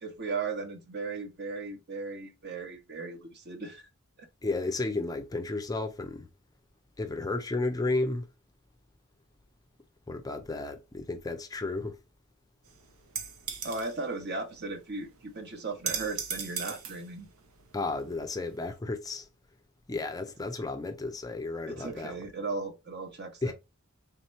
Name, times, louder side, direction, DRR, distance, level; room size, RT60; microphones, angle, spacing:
voice 1, 0.0-3.9 4.2-4.3 13.6-17.3 21.7-23.5, right 3 dB, 50° right, 1.0 m, -37 dB
voice 2, 4.4-6.3 7.0-8.3 10.1-12.0 17.7-19.3 19.9-22.2 23.4-23.5, left 2 dB, 20° left, 0.4 m, -33 dB
sound 1, 12.7-18.8, right 7 dB, 85° right, 0.9 m, -40 dB
3.6 x 2.9 x 4.2 m
head